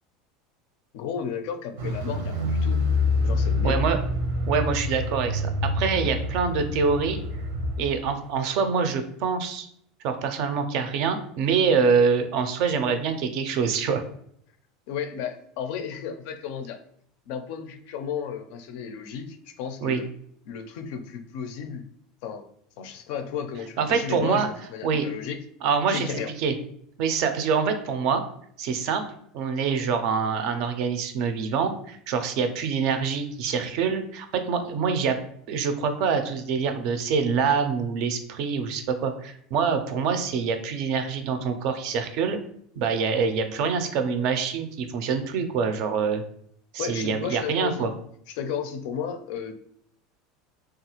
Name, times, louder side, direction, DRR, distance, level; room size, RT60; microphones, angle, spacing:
voice 1, 0.9-2.8 3.2-3.9 14.9-16.8 17.3-20.1 20.5-21.9 22.2-22.5 22.8-25.4 25.9-26.3 46.8-47.9 48.3-49.5, left 7 dB, 55° left, 6 dB, 0.4 m, -33 dB
Car, 1.8-8.2, left 2 dB, 85° right, 0.7 m, -26 dB
voice 2, 3.6-4.0 4.5-7.2 7.8-9.7 10.0-14.0 19.8-20.0 23.8-24.5 24.8-25.1 25.6-26.1 26.4-26.5 27.0-28.2 28.6-29.0 29.3-35.2 35.5-42.4 42.8-46.2 46.7-47.9, right 5 dB, 50° right, 8 dB, 0.4 m, -25 dB
3.3 x 2.3 x 2.8 m, 0.67 s
supercardioid pair, 170°, 0 cm